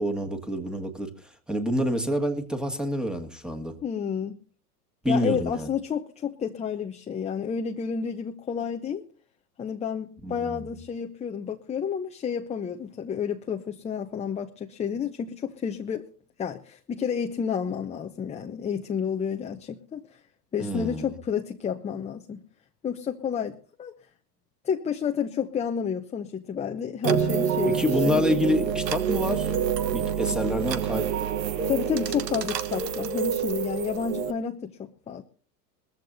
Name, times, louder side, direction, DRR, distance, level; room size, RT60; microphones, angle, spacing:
voice 1, 0.0-3.8 5.0-5.7 10.2-10.7 20.6-21.1 27.6-29.5 29.9-31.1, equal, ahead, 1.7 m, -27 dB
voice 2, 3.8-4.4 5.1-9.0 9.6-16.1 16.4-20.0 20.5-22.4 22.8-23.9 24.6-28.2 30.3-30.4 31.7-35.2, left 7 dB, 15° left, 0.8 m, -30 dB
sound 1, 27.0-34.3, right 7 dB, 90° right, 1.3 m, -27 dB
21.0 x 14.5 x 2.7 m
hypercardioid pair, 120°, 48 cm